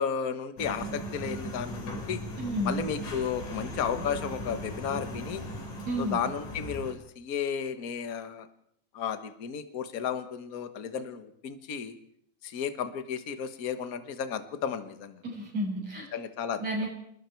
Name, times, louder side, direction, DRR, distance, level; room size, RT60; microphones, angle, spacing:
voice 1, 0.0-2.2 2.6-5.4 6.0-8.5 8.9-11.9 12.4-15.2 16.1-16.6, left 7 dB, 45° left, 9 dB, 1.2 m, -33 dB
sound 1, 0.6-6.9, equal, 70° left, 5.2 m, -38 dB
voice 2, 2.4-2.8 5.9-6.2 15.2-16.1 16.6-16.9, equal, 55° right, -1 dB, 8.3 m, -31 dB
27.5 x 20.5 x 4.6 m, 0.68 s
omnidirectional pair, 3.6 m